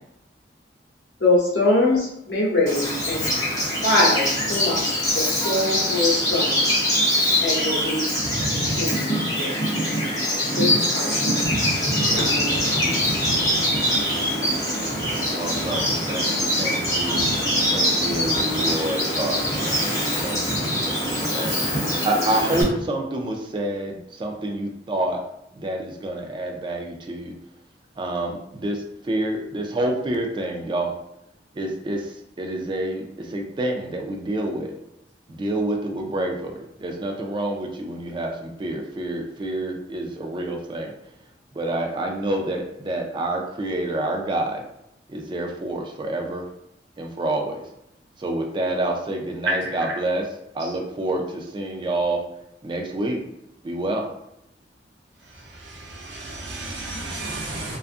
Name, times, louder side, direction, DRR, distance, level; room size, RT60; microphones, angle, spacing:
voice 1, 1.2-3.4 3.8-6.7 7.4-8.0 8.5-9.1 9.4-9.5 10.6-11.3 12.0-12.8, left 2 dB, 70° left, -4 dB, 0.8 m, -23 dB
Bird vocalization bird call bird song, 2.7-22.6, equal, 20° left, 0.7 m, -23 dB
voice 2, 15.3-17.4 17.7-25.2 25.5-27.3 28.0-31.0 31.5-34.7 35.3-40.9 41.5-44.6 45.1-46.5 47.0-47.6 48.2-50.3 50.5-52.3 52.6-53.2 53.6-54.1, right 1 dB, 25° right, 2 dB, 0.3 m, -28 dB
voice 3, 49.4-49.9 50.6-50.7 55.3-57.8, right 2 dB, 85° right, -1 dB, 0.7 m, -32 dB
2.4 x 2.3 x 2.5 m, 0.79 s
head